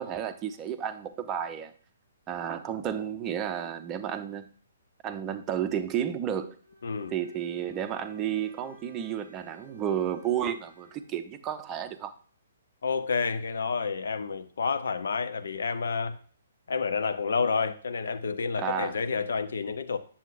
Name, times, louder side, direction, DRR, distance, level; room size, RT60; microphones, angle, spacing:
voice 1, 0.0-1.7 2.3-4.5 5.0-6.6 7.1-12.1 18.6-19.0, right 9 dB, 20° right, 0.6 m, -32 dB
Bowed string instrument, 6.6-11.1, left 1 dB, 80° left, 1.8 m, -53 dB
voice 2, 6.8-7.1 12.8-16.2 16.7-20.0, left 5 dB, 60° left, 0.5 m, -29 dB
9.0 x 7.0 x 2.5 m
figure-of-eight pair, 125°, 0 cm